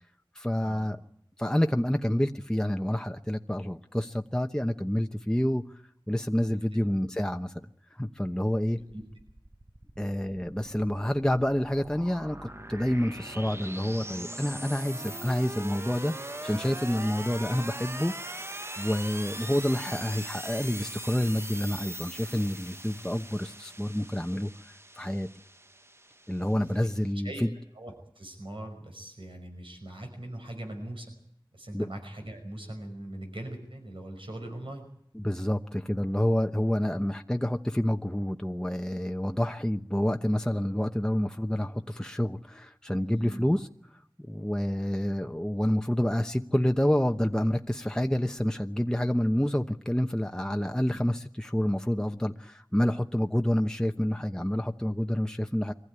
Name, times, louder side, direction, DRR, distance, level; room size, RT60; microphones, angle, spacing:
voice 1, 0.3-1.0 1.4-5.6 6.1-7.5 7.9-8.8 10.0-18.1 18.8-24.5 25.0-25.3 26.3-27.5 31.7-31.9 35.1-43.7 44.3-55.7, equal, 10° left, 5 dB, 1.0 m, -28 dB
voice 2, 6.5-6.8 8.7-9.0 26.4-27.4 27.7-31.1 31.5-34.9 43.0-43.5, right 1 dB, 80° right, 4 dB, 5.6 m, -41 dB
sound 1, 9.2-27.1, right 1 dB, 30° right, 1.1 m, -41 dB
24.0 x 15.5 x 9.6 m, 0.70 s
wide cardioid pair, 45°, 9 cm